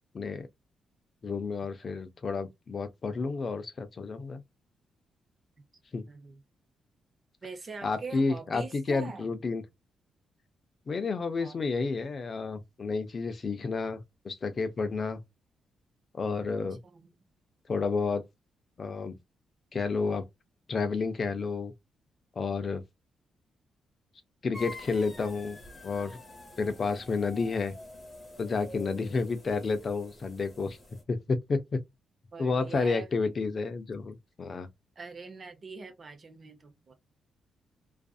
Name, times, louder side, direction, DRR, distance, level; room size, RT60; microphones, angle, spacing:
voice 1, 0.1-0.5 1.2-4.4 5.9-6.0 7.8-9.6 10.9-15.2 16.1-16.8 17.7-18.2 18.8-19.2 19.7-20.2 20.7-21.7 22.4-22.8 24.4-25.6 25.8-26.2 26.6-27.7 28.4-30.8 31.1-31.8 32.4-34.7, left 4 dB, 35° left, 0.4 m, -30 dB
voice 2, 6.1-6.4 7.4-9.3 11.4-11.6 16.8-17.1 32.3-33.6 35.0-36.9, right 4 dB, 35° right, 0.7 m, -43 dB
sound 1, 24.5-31.0, left 1 dB, 20° left, 1.0 m, -47 dB
2.5 x 2.4 x 2.3 m
cardioid pair, 130°, 0 cm